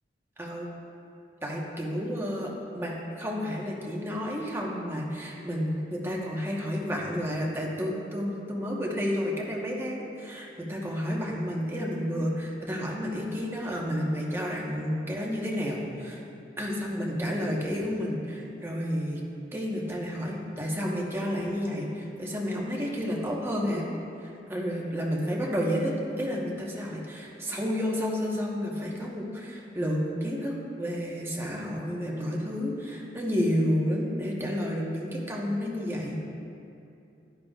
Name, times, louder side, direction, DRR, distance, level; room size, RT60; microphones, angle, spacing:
voice 1, 0.4-0.7 1.4-16.2 16.6-19.2 19.5-23.9 24.2-36.2, equal, 15° right, -3 dB, 1.2 m, -31 dB
10.5 x 10.5 x 2.5 m, 2.7 s
head